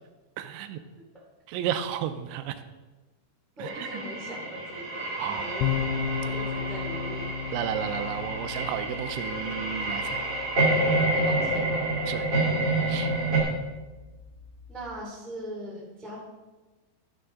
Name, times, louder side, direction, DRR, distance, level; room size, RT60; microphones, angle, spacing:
voice 1, 0.4-0.8 1.5-2.6 3.6-3.9 5.2-5.5 7.5-10.2 12.1-12.3 12.9-13.1, right 10 dB, 85° right, 10 dB, 2.9 m, -32 dB
voice 2, 3.6-5.8 6.2-7.3 11.1-11.9 14.7-16.2, right 1 dB, ahead, -4 dB, 0.4 m, -40 dB
sound 1, 3.7-13.4, right 2 dB, 35° right, 2.3 m, -28 dB
sound 2, 5.6-15.0, left 8 dB, 80° left, 3.0 m, -36 dB
13.0 x 9.5 x 3.7 m, 1.2 s
omnidirectional pair, 5.4 m